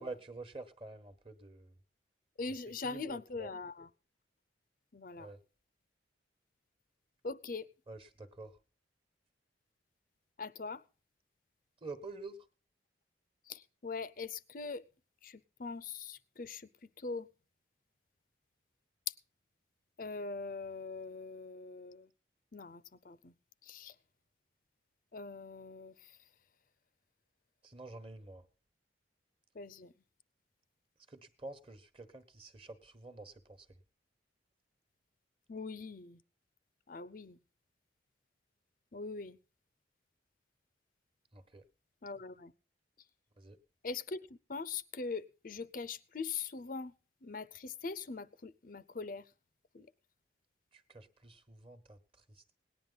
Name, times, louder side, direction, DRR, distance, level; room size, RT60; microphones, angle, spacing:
voice 1, 0.0-1.8 2.5-2.6 2.8-3.5 5.2-5.4 7.9-8.6 11.8-12.5 27.6-28.5 31.1-33.7 41.3-41.6 43.4-43.6 50.7-52.5, right 3 dB, 30° right, 1.2 m, -48 dB
voice 2, 2.4-3.9 4.9-5.3 7.2-7.7 10.4-10.8 13.4-14.8 15.2-17.3 19.1-19.2 20.0-22.1 22.5-23.3 23.6-24.0 25.1-26.3 29.5-29.9 35.5-36.2 36.9-37.4 38.9-39.4 42.0-42.5 43.8-46.9 47.2-49.3 49.7-49.9, left 4 dB, 45° left, 0.6 m, -42 dB
18.5 x 10.5 x 4.0 m
head